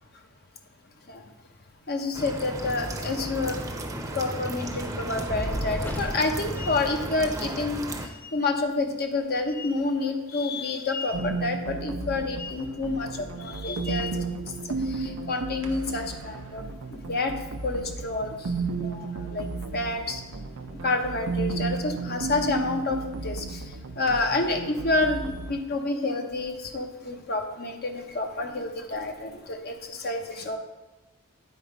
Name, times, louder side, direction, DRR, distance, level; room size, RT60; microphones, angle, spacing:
voice 1, 1.9-3.6 3.9-7.8 8.2-14.1 14.9-16.6 16.9-17.3 17.6-18.4 18.8-19.5 19.7-20.2 20.8-23.6 24.0-30.6, left 3 dB, 50° left, 4 dB, 0.8 m, -29 dB
sound 1, 2.1-8.1, right 1 dB, 15° right, 0.7 m, -34 dB
Fire, 5.2-7.6, equal, 10° left, 0.3 m, -34 dB
sound 2, 11.1-25.6, right 4 dB, 80° right, 0.5 m, -34 dB
9.1 x 4.3 x 5.0 m, 1.0 s
head